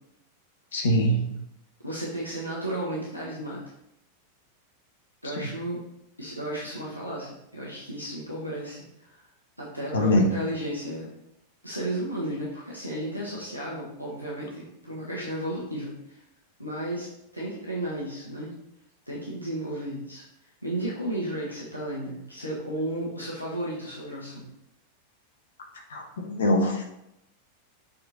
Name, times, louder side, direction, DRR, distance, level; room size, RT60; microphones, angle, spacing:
voice 1, 0.7-1.2 9.9-10.2 25.9-26.8, left 1 dB, 65° left, 2 dB, 1.4 m, -23 dB
voice 2, 1.8-3.6 5.2-5.8 6.2-9.2 9.6-11.1 11.6-16.2 16.6-17.1 17.3-18.5 19.1-20.2 20.6-24.4, right 1 dB, 90° left, -6 dB, 1.5 m, -33 dB
7.4 x 4.3 x 4.1 m, 0.82 s
figure-of-eight pair, 90°, 0 cm